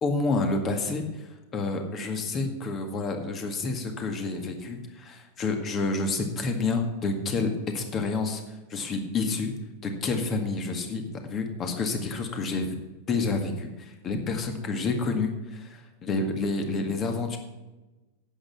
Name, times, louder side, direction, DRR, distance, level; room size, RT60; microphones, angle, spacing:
voice 1, 0.0-1.3 1.5-8.4 8.7-9.5 9.8-12.8 13.1-17.4, left 3 dB, 25° left, 5 dB, 1.9 m, -29 dB
11.0 x 8.4 x 5.5 m, 1.1 s
figure-of-eight pair, 90°, 0 cm